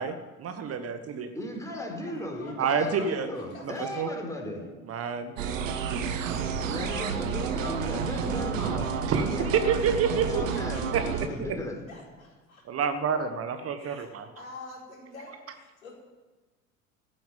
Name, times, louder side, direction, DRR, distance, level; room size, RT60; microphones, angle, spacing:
voice 1, 0.0-1.3 2.6-3.3 3.6-4.1 4.9-5.6 5.9-6.3 9.1-10.4 10.9-11.1 11.4-11.5 12.6-14.3, right 6 dB, 35° right, 8 dB, 1.3 m, -29 dB
voice 2, 1.3-4.8 6.6-9.5 10.3-10.9 11.2-11.8, left 1 dB, 5° left, 1 dB, 4.0 m, -36 dB
voice 3, 2.0-3.7 7.1-7.2 10.5-11.4 11.9-12.6 13.8-15.9, left 3 dB, 75° left, -2 dB, 4.4 m, -47 dB
sound 1, 5.4-11.3, right 6 dB, 70° right, 1.2 m, -30 dB
14.5 x 7.6 x 9.2 m, 1.3 s
figure-of-eight pair, 65°, 41 cm